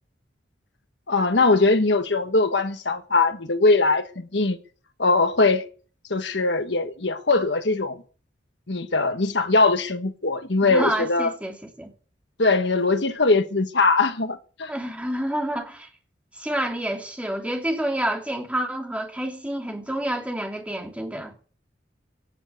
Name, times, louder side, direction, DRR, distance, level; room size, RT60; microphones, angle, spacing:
voice 1, 1.1-4.6 5.0-5.6 6.1-8.0 8.7-11.3 12.4-14.7, left 3 dB, 70° left, 1.4 m, -21 dB
voice 2, 10.6-11.9 14.7-15.9 16.4-21.4, right 1 dB, 5° right, 2.9 m, -28 dB
18.0 x 7.4 x 8.2 m
head